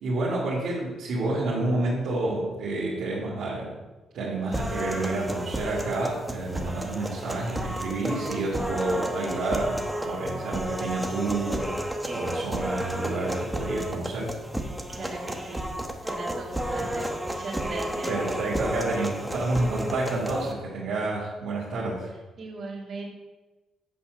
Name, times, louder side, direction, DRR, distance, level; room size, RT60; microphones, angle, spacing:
voice 1, 0.0-3.8 4.1-11.7 12.0-14.3 16.8-16.9 18.1-22.1, right 2 dB, 75° right, -9 dB, 2.0 m, -29 dB
sound 1, 4.5-20.5, right 1 dB, 5° right, 0.9 m, -32 dB
voice 2, 14.9-15.7 16.0-18.2 22.4-23.1, right 3 dB, 50° right, -2 dB, 2.2 m, -38 dB
8.3 x 4.3 x 5.9 m, 1.2 s
cardioid pair, 90°, 0 cm